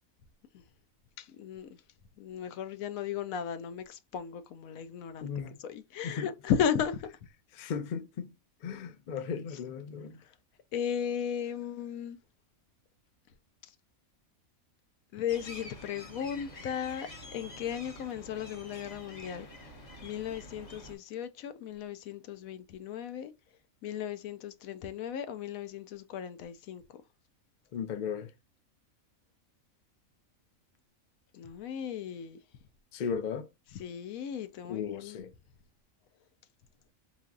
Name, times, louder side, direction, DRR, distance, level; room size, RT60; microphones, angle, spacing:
voice 1, 1.2-1.8 2.2-5.3 5.6-7.1 10.2-10.3 10.7-12.2 15.1-19.5 20.0-23.3 23.8-27.0 31.3-32.4 33.7-35.3, left 8 dB, 80° left, 1.0 m, -36 dB
voice 2, 5.2-5.6 6.0-6.3 7.5-8.3 8.6-10.2 27.7-28.3 32.9-33.5 34.7-35.3, left 6 dB, 55° left, 0.5 m, -36 dB
sound 1, 15.3-21.0, left 1 dB, 35° left, 1.0 m, -47 dB
4.2 x 3.0 x 2.3 m
omnidirectional pair, 1.4 m